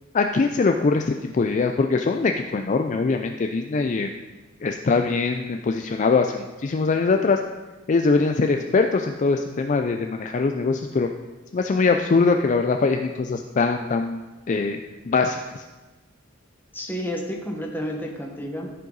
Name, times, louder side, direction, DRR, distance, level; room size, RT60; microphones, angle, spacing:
voice 1, 0.1-4.1 4.6-7.4 7.9-11.1 11.5-14.2 14.5-14.8 15.1-15.6, left 4 dB, 40° left, 5 dB, 0.4 m, -22 dB
voice 2, 16.7-18.7, equal, 10° left, 0 dB, 1.3 m, -30 dB
14.5 x 5.6 x 4.0 m, 1.2 s
head